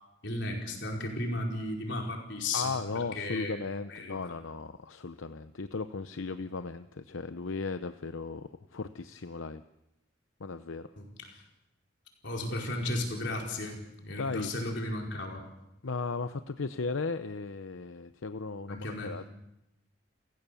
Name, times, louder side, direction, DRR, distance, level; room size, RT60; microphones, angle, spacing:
voice 1, 0.2-3.6 3.9-4.3 11.0-11.4 12.2-15.4 18.7-19.1, left 1 dB, 60° left, 1 dB, 4.9 m, -35 dB
voice 2, 2.5-9.6 10.4-10.9 14.2-14.5 15.8-19.3, left 4 dB, 85° left, 11 dB, 0.7 m, -36 dB
29.5 x 16.0 x 7.0 m, 0.90 s
head